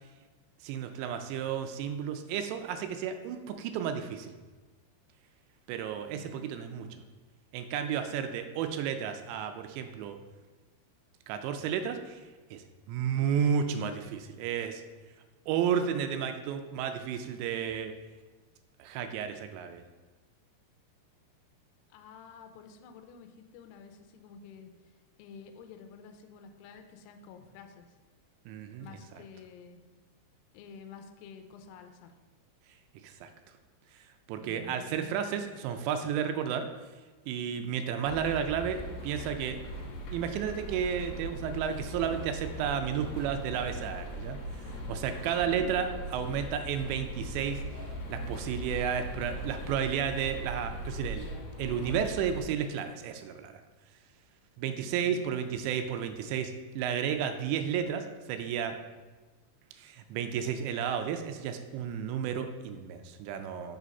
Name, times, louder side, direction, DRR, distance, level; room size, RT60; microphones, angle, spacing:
voice 1, 0.6-4.4 5.7-7.0 7.5-10.2 11.3-14.8 15.5-17.9 18.8-19.8 28.5-28.9 33.0-33.3 33.9-36.7 37.3-39.6 40.1-47.6 48.1-51.3 51.6-53.5 54.6-58.8 59.8-63.8, right 8 dB, 85° right, 7 dB, 2.8 m, -32 dB
voice 2, 6.0-7.0 13.0-13.3 21.9-28.0 28.8-29.8 30.5-32.1 34.4-35.3 37.6-37.9 45.4-45.7 54.7-55.3, left 6 dB, 80° left, 6 dB, 2.5 m, -50 dB
sound 1, 38.0-52.4, equal, 65° left, 2.8 m, -40 dB
6.3 x 5.1 x 5.3 m, 1.3 s
omnidirectional pair, 5.1 m